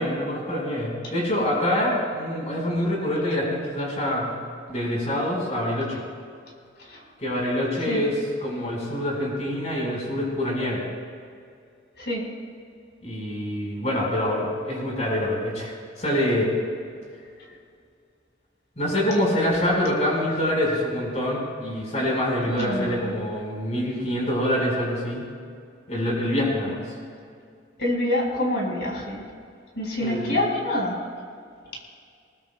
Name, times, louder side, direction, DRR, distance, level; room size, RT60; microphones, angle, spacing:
voice 1, 0.0-4.3 4.7-6.0 7.2-10.8 13.0-16.5 18.8-25.3 25.9-26.8 30.0-30.4, left 1 dB, 40° left, -2 dB, 4.6 m, -25 dB
voice 2, 22.5-23.1 27.8-29.2 29.8-31.0, left 1 dB, 65° left, -2 dB, 4.4 m, -26 dB
22.5 x 20.5 x 2.2 m, 2.3 s
head